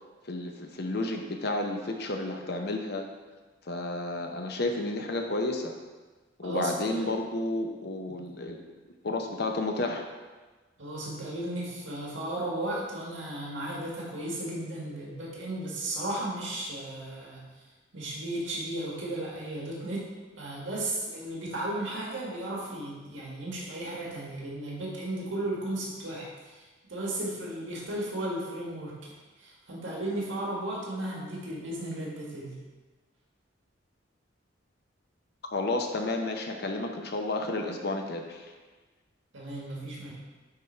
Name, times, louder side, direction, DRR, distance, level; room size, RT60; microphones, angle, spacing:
voice 1, 0.2-3.1 3.7-5.7 6.4-8.6 9.0-10.1 35.5-38.5, left 2 dB, 55° left, 3 dB, 0.8 m, -31 dB
voice 2, 6.4-7.0 8.1-8.2 10.8-17.5 17.9-32.6 39.3-40.1, right 1 dB, 80° right, -4 dB, 1.8 m, -35 dB
9.6 x 3.6 x 4.4 m, 1.3 s
head